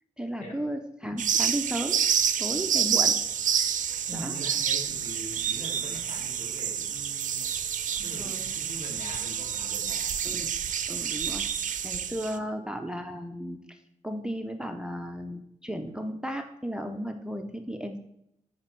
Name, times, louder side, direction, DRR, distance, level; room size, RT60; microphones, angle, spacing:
voice 1, 0.2-2.1 2.4-3.2 4.1-4.4 8.0-8.5 10.2-10.5 10.9-11.5 11.8-13.8 14.0-18.0, equal, 5° right, 6 dB, 0.4 m, -34 dB
sound 1, 1.2-12.4, right 8 dB, 75° right, 0.5 m, -28 dB
voice 2, 4.1-7.6 8.0-10.1 12.4-12.5, equal, 75° left, -2 dB, 2.4 m, -42 dB
9.9 x 4.4 x 4.5 m, 0.78 s
wide cardioid pair, 175°, 13 cm